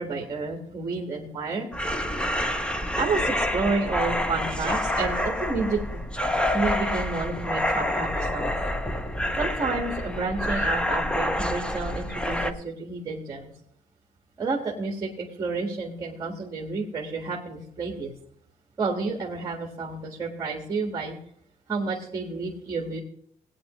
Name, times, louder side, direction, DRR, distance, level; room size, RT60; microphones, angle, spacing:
voice 1, 0.0-1.7 3.0-6.1 6.5-8.5 9.4-13.5 14.4-18.1 18.8-21.2 21.7-23.0, right 3 dB, 25° right, -1 dB, 1.5 m, -30 dB
sound 1, 1.7-12.5, left 1 dB, 5° left, 0.6 m, -27 dB
17.5 x 8.9 x 3.0 m, 0.67 s
cardioid pair, 140°, 15 cm